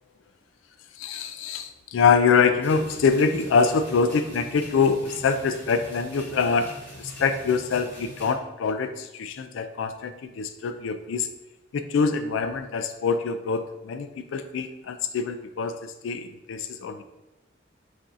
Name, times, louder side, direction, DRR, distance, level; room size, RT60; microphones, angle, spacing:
voice 1, 1.0-6.7 7.0-11.3 11.7-17.0, left 5 dB, 80° left, 9 dB, 0.3 m, -24 dB
sound 1, 2.6-8.3, equal, 10° left, 1.3 m, -42 dB
5.3 x 2.6 x 2.5 m, 1.0 s
head